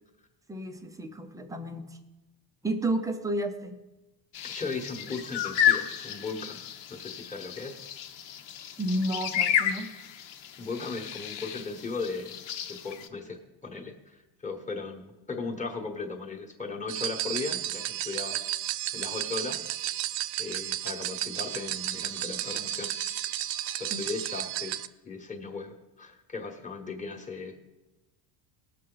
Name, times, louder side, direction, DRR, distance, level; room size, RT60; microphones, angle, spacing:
voice 1, 0.5-1.9 2.6-3.8 8.8-9.9 23.9-24.1, right 1 dB, 10° right, 7 dB, 0.4 m, -31 dB
sound 1, 4.3-13.1, left 9 dB, 60° left, 1.0 m, -32 dB
voice 2, 4.4-6.6 6.9-7.8 10.6-12.3 12.7-18.5 18.9-19.7 20.4-22.9 23.7-24.8 25.0-27.5, left 4 dB, 15° left, 2 dB, 1.1 m, -37 dB
sound 2, 16.9-24.9, right 13 dB, 60° right, 0.6 m, -33 dB
19.0 x 6.4 x 3.9 m, 1.0 s
cardioid pair, 160°, 49 cm